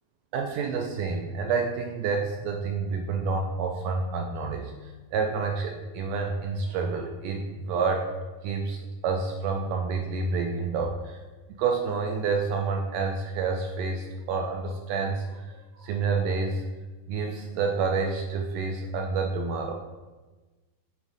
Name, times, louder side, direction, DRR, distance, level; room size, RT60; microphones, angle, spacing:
voice 1, 0.3-8.0 8.4-11.2 11.6-16.7 17.1-19.7, right 4 dB, 80° right, 2 dB, 2.0 m, -29 dB
9.0 x 3.6 x 3.9 m, 1.2 s
omnidirectional pair, 4.1 m